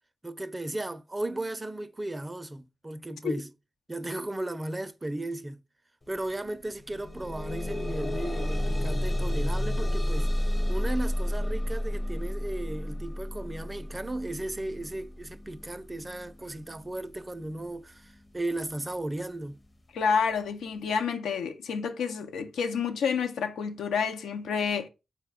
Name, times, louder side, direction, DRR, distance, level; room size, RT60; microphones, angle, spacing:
voice 1, 0.2-3.5 3.9-5.6 6.1-10.3 10.7-19.6, right 1 dB, 25° right, 0.4 m, -35 dB
sound 1, 6.1-6.2 6.6-17.6 18.4-18.5 18.9-19.0, left 1 dB, 30° left, 0.6 m, -31 dB
voice 2, 19.9-24.9, left 6 dB, 85° left, 0.4 m, -29 dB
4.0 x 2.1 x 3.8 m
supercardioid pair, 45°, 0 cm